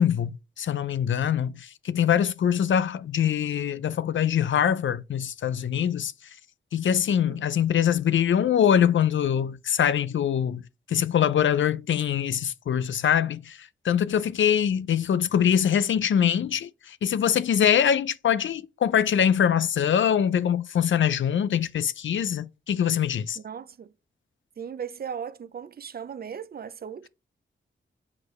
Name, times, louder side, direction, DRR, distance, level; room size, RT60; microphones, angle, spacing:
voice 1, 0.0-6.1 6.7-10.6 10.9-23.4, left 9 dB, 75° left, 0.4 m, -23 dB
voice 2, 7.1-7.5 23.4-23.9 24.6-27.1, right 7 dB, 50° right, 0.5 m, -37 dB
6.3 x 4.9 x 3.1 m
wide cardioid pair, 90°, 20 cm